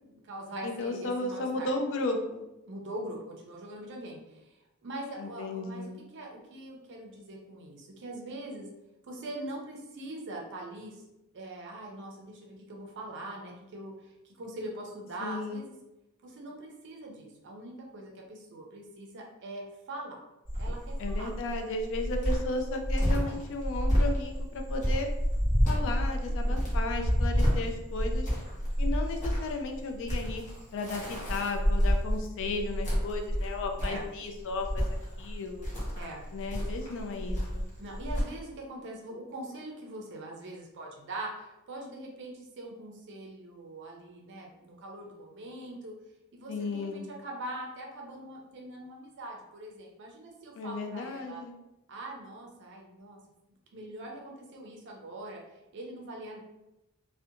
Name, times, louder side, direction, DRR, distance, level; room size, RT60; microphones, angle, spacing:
voice 1, 0.0-1.7 2.7-8.7 9.1-11.0 11.3-15.8 16.2-20.2 20.6-21.3 26.2-26.7 33.8-34.0 36.0-36.6 37.8-45.9 46.3-51.4 51.9-53.2 53.7-55.4 55.7-56.4, right 1 dB, 55° right, 0 dB, 0.5 m, -42 dB
voice 2, 0.6-2.4 5.2-6.0 15.2-15.6 21.0-25.1 25.7-28.3 28.8-30.4 30.7-34.9 35.2-35.7 36.3-37.6 46.5-47.1 50.6-51.5, left 2 dB, 60° left, 4 dB, 0.4 m, -34 dB
Cricket, 20.5-38.2, equal, 35° left, 0.8 m, -29 dB
2.5 x 2.1 x 2.7 m, 0.94 s
head